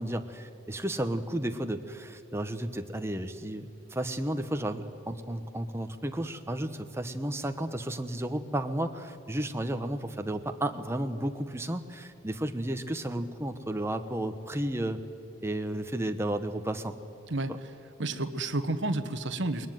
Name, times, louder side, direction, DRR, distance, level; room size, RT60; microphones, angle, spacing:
voice 1, 0.0-15.0 15.4-16.9 17.5-17.6, right 1 dB, 10° right, 7 dB, 1.0 m, -33 dB
voice 2, 18.0-19.7, right 2 dB, 55° right, 9 dB, 1.3 m, -30 dB
21.0 x 21.0 x 9.2 m, 2.6 s
head